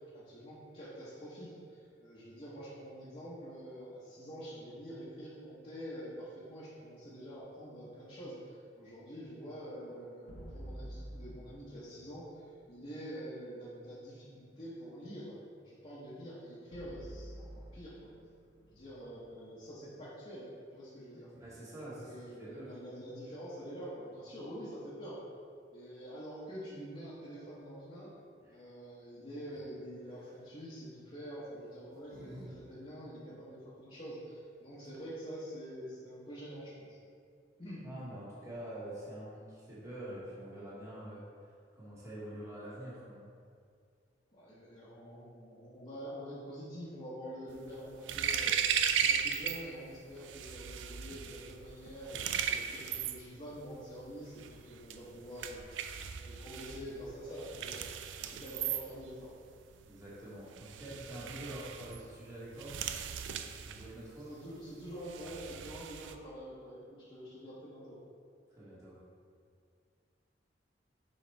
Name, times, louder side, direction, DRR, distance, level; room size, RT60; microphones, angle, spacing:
voice 1, 0.1-15.4 15.6-18.1 18.7-21.3 21.8-25.2 25.7-28.1 28.5-37.0 37.6-37.8 44.3-57.8 58.2-59.3 64.2-68.0, equal, 35° left, -10 dB, 1.2 m, -46 dB
sound 1, 10.3-12.5 16.7-19.9, equal, 65° left, 0.9 m, -49 dB
voice 2, 21.1-22.1 22.4-22.7 28.4-28.6 37.8-41.2 41.7-43.3 59.8-62.7 63.6-64.3 68.6-69.0, right 1 dB, 15° right, -9 dB, 1.5 m, -46 dB
sound 2, 30.0-30.5 31.4-32.5 32.8-32.9 34.5-34.6 34.8-35.3, left 1 dB, 55° right, 1.3 m, -53 dB
sound 3, 47.5-49.6 49.9-66.1, right 8 dB, 75° right, 0.4 m, -37 dB
6.6 x 4.2 x 3.4 m, 2.2 s
head